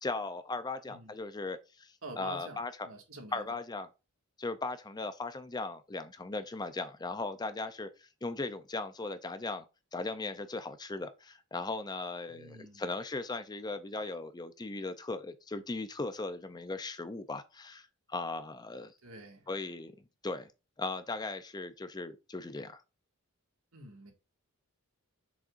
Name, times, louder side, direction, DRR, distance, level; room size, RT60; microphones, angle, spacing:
voice 1, 0.0-2.9 3.3-3.9 4.4-9.7 9.9-18.9 19.5-19.9 20.2-20.5 20.8-22.8, left 3 dB, 20° left, 0.5 m, -38 dB
voice 2, 2.0-3.5 12.3-12.9 19.0-19.5 23.7-24.1, right 2 dB, 65° right, 2.0 m, -47 dB
7.2 x 6.3 x 2.6 m
head